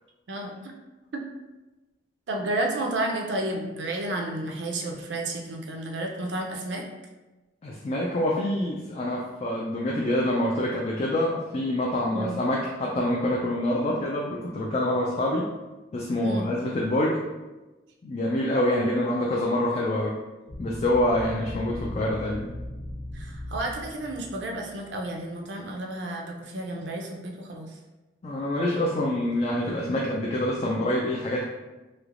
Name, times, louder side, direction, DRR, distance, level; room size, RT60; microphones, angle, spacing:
voice 1, 2.3-6.8 12.1-12.4 16.2-16.5 23.1-27.7, right 1 dB, 70° right, 1 dB, 0.5 m, -31 dB
voice 2, 7.6-15.5 15.9-17.2 18.0-20.1 20.6-22.5 28.2-31.4, left 1 dB, 35° left, -3 dB, 0.3 m, -26 dB
sound 1, 20.5-25.2, left 1 dB, 90° left, 0.9 m, -38 dB
3.2 x 2.8 x 2.5 m, 1.1 s
head